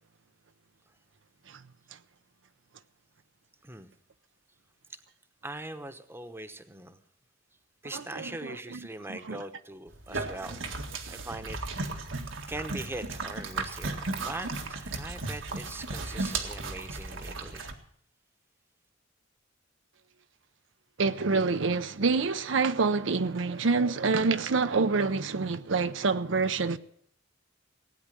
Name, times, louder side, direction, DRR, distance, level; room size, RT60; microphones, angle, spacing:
voice 1, 5.4-7.0 7.8-10.6 11.1-11.6 12.5-17.7, right 2 dB, 10° right, 1.0 m, -41 dB
voice 2, 7.9-8.8 9.3-9.4 21.0-26.8, right 4 dB, 75° right, 0.7 m, -27 dB
sound 1, 9.9-17.7, right 3 dB, 90° right, 1.9 m, -35 dB
17.0 x 9.4 x 7.6 m
head